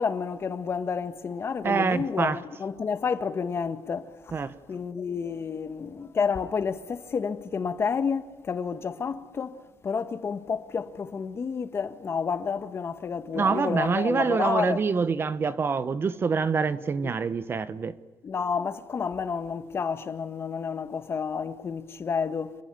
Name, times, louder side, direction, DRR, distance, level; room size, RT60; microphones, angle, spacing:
voice 1, 0.0-4.3 4.7-14.8 17.0-17.1 18.2-22.6, left 6 dB, 35° left, 1.5 m, -30 dB
voice 2, 1.6-2.4 4.3-4.5 13.3-17.9, right 5 dB, 30° right, 1.1 m, -26 dB
27.5 x 21.0 x 9.2 m
cardioid pair, 130°, 7 cm